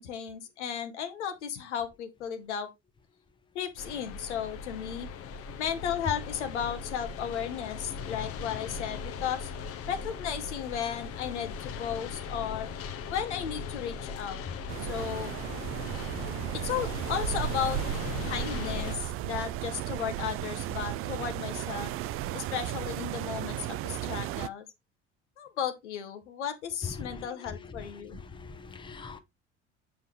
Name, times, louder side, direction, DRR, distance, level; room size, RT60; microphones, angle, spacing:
voice 1, 0.0-2.7 3.5-5.1 5.6-9.5 9.9-12.7 13.1-14.4 14.8-15.3 16.5-17.8 18.2-21.9 22.3-24.7 25.4-28.2, left 8 dB, 75° left, 1.1 m, -34 dB
sound 1, 3.8-19.0, left 5 dB, 40° left, 0.9 m, -39 dB
sound 2, 14.7-24.5, right 14 dB, 40° right, 0.4 m, -35 dB
voice 2, 26.8-29.2, left 4 dB, 15° left, 0.9 m, -42 dB
7.8 x 5.1 x 3.1 m
figure-of-eight pair, 65°, 36 cm